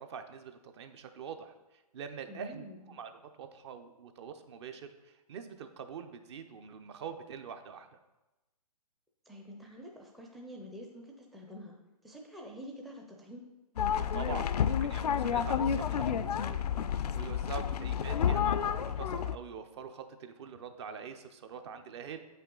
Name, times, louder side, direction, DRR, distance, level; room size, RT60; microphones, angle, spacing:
voice 1, 0.0-3.1 3.4-7.9 14.1-16.6 16.8-22.2, right 6 dB, 45° right, 8 dB, 0.7 m, -44 dB
voice 2, 2.3-2.9 9.3-11.7 12.0-13.5 17.6-18.0, equal, ahead, -1 dB, 0.5 m, -47 dB
sound 1, 13.8-19.4, left 8 dB, 85° left, 0.4 m, -30 dB
7.9 x 5.7 x 3.8 m, 1.0 s
hypercardioid pair, 145°, 20 cm